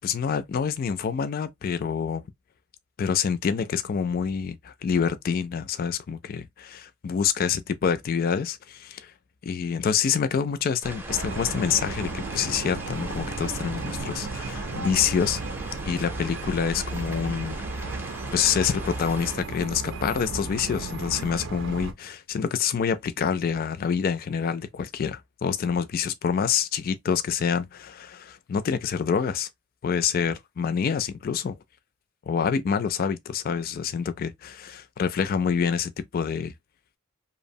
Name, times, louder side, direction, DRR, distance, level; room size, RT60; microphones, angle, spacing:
voice 1, 0.0-2.2 3.0-9.1 9.4-15.4 15.9-29.5 29.8-31.5 32.3-36.5, left 7 dB, 45° left, 0.3 m, -27 dB
sound 1, 10.8-19.4, right 1 dB, 10° right, 0.5 m, -39 dB
sound 2, 11.1-21.9, right 3 dB, 65° right, 0.5 m, -34 dB
2.8 x 2.0 x 2.6 m
head